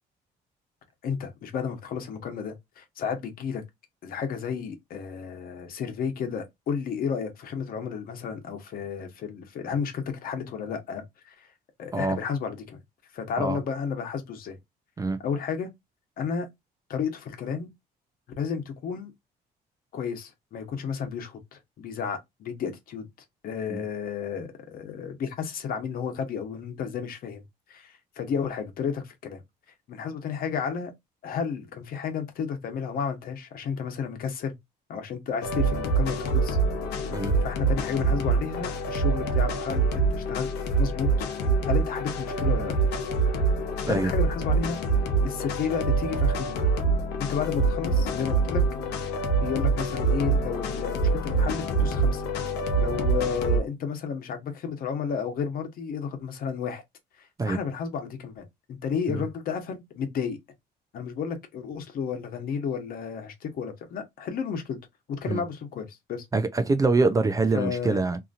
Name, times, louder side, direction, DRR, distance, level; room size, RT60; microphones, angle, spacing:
voice 1, 1.0-3.6 4.0-11.5 11.8-12.8 13.1-14.6 15.2-15.7 16.2-16.5 16.9-17.7 18.4-19.1 19.9-23.1 23.4-27.4 27.7-29.4 29.9-30.9 31.2-34.6 34.9-36.6 37.4-40.5 40.8-41.1 41.7-42.7 43.9-44.8 45.2-46.7 47.2-48.6 49.4-52.2 52.7-56.8 57.2-60.4 60.9-64.8 65.1-66.2 67.5-68.0, left 6 dB, 60° left, 1.0 m, -32 dB
sound 1, 35.4-53.6, right 3 dB, 80° left, 0.8 m, -25 dB
voice 2, 37.1-37.4 43.9-44.1 57.4-57.6 59.1-59.3 65.3-65.4 66.3-68.2, right 3 dB, 20° right, 0.4 m, -25 dB
2.8 x 2.6 x 2.5 m
cardioid pair, 110°, 17 cm